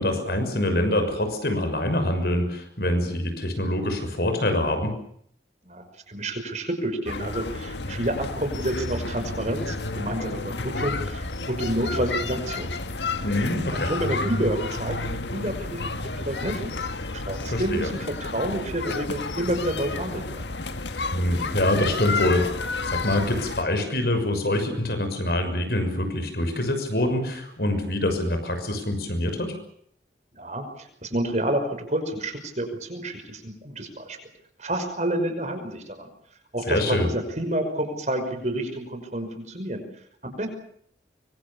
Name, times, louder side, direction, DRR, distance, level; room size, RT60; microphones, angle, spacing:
voice 1, 0.0-4.9 13.2-13.9 17.5-17.9 20.9-22.5 22.8-29.5 36.7-37.1, left 1 dB, 60° left, 7 dB, 6.3 m, -25 dB
voice 2, 5.7-12.7 13.7-16.8 17.1-20.4 30.3-34.2 34.6-36.1 36.5-39.8 40.2-40.5, right 1 dB, 40° right, 7 dB, 5.6 m, -29 dB
sound 1, 7.1-23.6, left 3 dB, 85° left, 1.7 m, -31 dB
25.0 x 24.0 x 7.1 m, 0.67 s
head